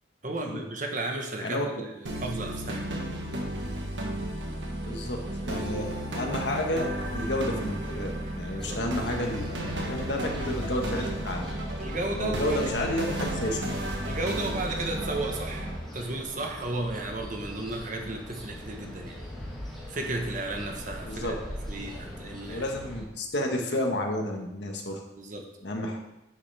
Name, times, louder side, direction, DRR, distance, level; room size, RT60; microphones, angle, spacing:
voice 1, 0.2-2.9 8.5-8.8 11.8-12.6 14.0-19.2 19.9-21.4 21.7-22.7 25.2-25.5, right 2 dB, 40° right, 2 dB, 1.2 m, -34 dB
sound 1, 2.1-15.8, right 1 dB, 75° right, 1.4 m, -33 dB
voice 2, 4.8-5.2 5.4-11.5 12.2-13.6 21.0-21.3 22.5-25.0 25.6-26.0, left 1 dB, 65° left, 1 dB, 1.3 m, -31 dB
sound 2, 8.6-23.0, equal, ahead, 2.1 m, -41 dB
9.7 x 6.5 x 3.4 m, 0.91 s
head